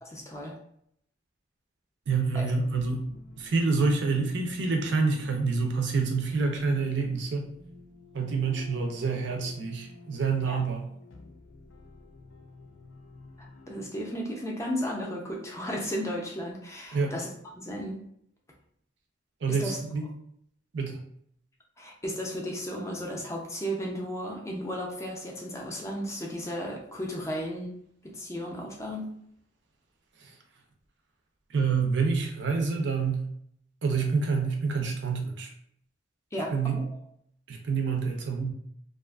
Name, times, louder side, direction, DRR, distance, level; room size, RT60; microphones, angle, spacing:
voice 1, 0.0-0.6 2.3-2.5 10.4-10.6 13.4-17.3 17.5-18.0 19.5-19.8 21.8-27.7 28.0-29.1 36.3-36.8, equal, 15° left, -1 dB, 0.4 m, -34 dB
voice 2, 2.1-3.1 3.4-7.5 8.1-10.9 16.9-17.2 19.4-20.1 20.7-21.0 30.2-30.3 31.5-33.3 33.8-35.5 36.5-36.8 37.5-38.5, right 4 dB, 65° right, 3 dB, 0.5 m, -27 dB
sound 1, 2.7-14.0, left 4 dB, 80° left, 0.4 m, -51 dB
2.5 x 2.4 x 2.3 m, 0.69 s
head